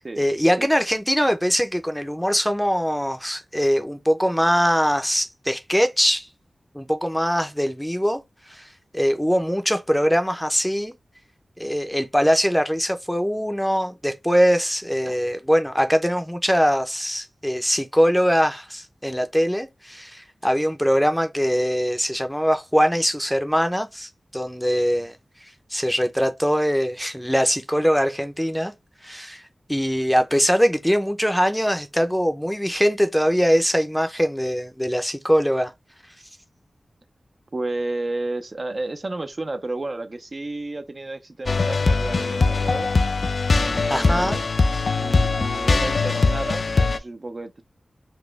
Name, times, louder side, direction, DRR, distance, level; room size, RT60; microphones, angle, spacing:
voice 1, 0.2-6.3 6.7-8.2 8.5-10.9 11.6-25.2 25.7-28.7 29.0-29.4 29.7-35.7 43.9-44.4, equal, 5° left, 0.6 m, -22 dB
voice 2, 37.5-42.9 43.5-44.5 45.0-47.6, right 2 dB, 45° right, 0.5 m, -32 dB
sound 1, 41.5-47.0, left 3 dB, 65° left, 0.4 m, -21 dB
4.1 x 2.1 x 3.2 m
wide cardioid pair, 70°, 0 cm